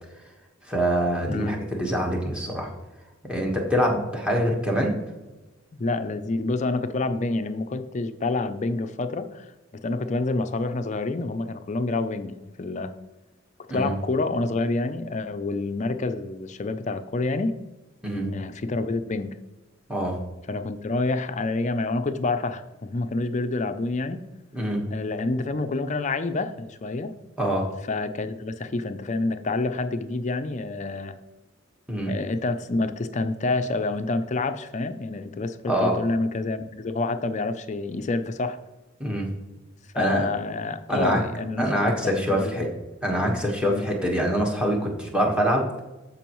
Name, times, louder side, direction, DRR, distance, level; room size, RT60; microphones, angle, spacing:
voice 1, 0.6-2.7 3.3-5.0 13.7-13.9 18.0-18.3 19.9-20.2 24.5-24.8 27.4-27.7 31.9-32.1 35.7-36.0 39.0-39.3 39.9-40.3 40.9-41.2 41.6-42.7 43.0-45.7, equal, 5° right, -1 dB, 1.3 m, -24 dB
voice 2, 1.3-1.6 5.8-9.5 9.8-12.9 13.7-17.5 18.1-19.3 20.5-24.2 24.9-27.1 27.9-31.2 32.1-38.6 39.9-42.6 43.7-43.9, left 3 dB, 35° left, 10 dB, 0.4 m, -28 dB
14.0 x 5.3 x 3.1 m, 1.1 s
head